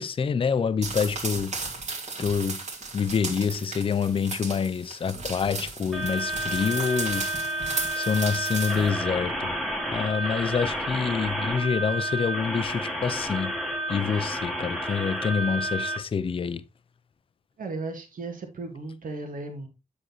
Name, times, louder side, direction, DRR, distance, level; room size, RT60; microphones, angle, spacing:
voice 1, 0.0-1.5 2.2-2.6 2.9-7.3 7.9-9.5 9.9-13.5 13.9-16.6, left 6 dB, 40° left, 0.4 m, -27 dB
sound 1, 0.8-8.9, right 3 dB, 55° right, 1.7 m, -35 dB
sound 2, 5.9-16.0, right 1 dB, ahead, 1.2 m, -30 dB
voice 2, 17.6-19.7, right 3 dB, 75° right, 1.8 m, -35 dB
7.7 x 6.2 x 3.0 m
wide cardioid pair, 130°, 14 cm